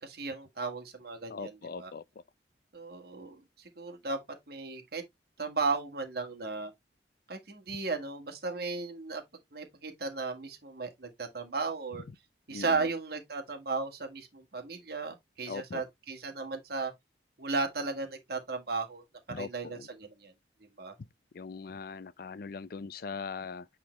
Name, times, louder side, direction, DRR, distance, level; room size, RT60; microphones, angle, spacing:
voice 1, 0.0-1.9 2.7-4.2 4.5-5.0 5.4-6.7 7.3-9.2 9.5-12.0 12.5-16.9 17.4-19.0 19.4-20.3 20.8-21.0, right 4 dB, 60° right, 1.7 m, -35 dB
voice 2, 1.3-2.0 12.5-12.9 15.5-15.8 19.3-19.9 21.3-23.7, left 5 dB, 55° left, 0.4 m, -40 dB
8.7 x 3.8 x 3.1 m
head